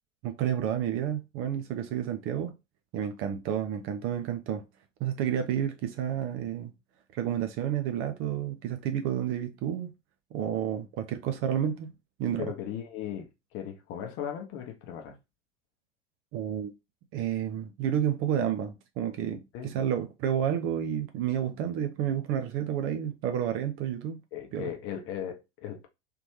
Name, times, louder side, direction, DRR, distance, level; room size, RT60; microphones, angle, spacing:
voice 1, 0.2-2.5 2.9-4.6 5.0-6.7 7.1-9.9 10.3-11.9 12.2-12.5 16.3-16.7 17.1-24.2 24.5-24.7, right 9 dB, 35° right, 0.6 m, -30 dB
voice 2, 12.4-15.2 19.5-19.8 24.3-25.9, left 9 dB, 35° left, 0.9 m, -37 dB
3.4 x 3.0 x 3.1 m
figure-of-eight pair, 80°, 37 cm